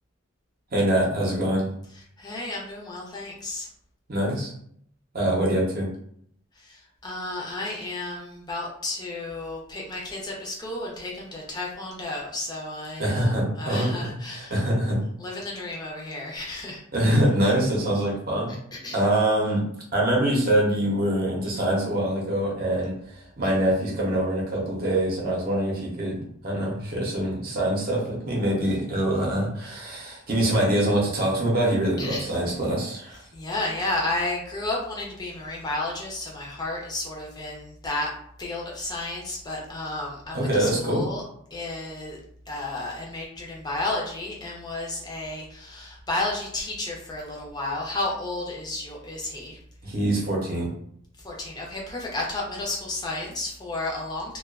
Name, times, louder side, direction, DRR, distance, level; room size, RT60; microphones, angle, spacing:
voice 1, 0.7-1.7 4.1-4.5 5.1-5.9 13.0-15.0 16.9-18.5 18.9-19.7 19.9-33.2 40.3-41.1 49.8-50.7, right 1 dB, 50° right, -2 dB, 0.7 m, -24 dB
voice 2, 2.2-3.7 6.6-14.7 15.2-16.8 18.7-19.0 32.0-32.4 33.3-38.1 38.4-41.2 41.5-42.2 42.5-49.6 51.2-54.4, left 2 dB, 20° left, -2 dB, 0.5 m, -32 dB
2.3 x 2.3 x 2.3 m, 0.67 s
head